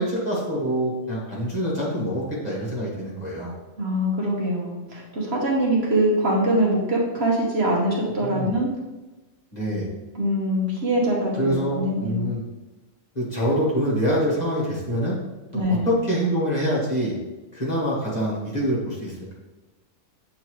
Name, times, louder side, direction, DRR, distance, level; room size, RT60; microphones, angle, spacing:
voice 1, 0.0-3.5 8.2-8.5 9.5-9.9 11.3-12.4 13.1-15.2 15.7-17.1 17.5-19.3, equal, 30° left, -6 dB, 1.5 m, -25 dB
voice 2, 3.8-8.7 10.1-12.2 15.5-15.9, right 1 dB, 50° right, -3 dB, 1.4 m, -23 dB
8.1 x 3.8 x 3.1 m, 1.1 s
omnidirectional pair, 1.4 m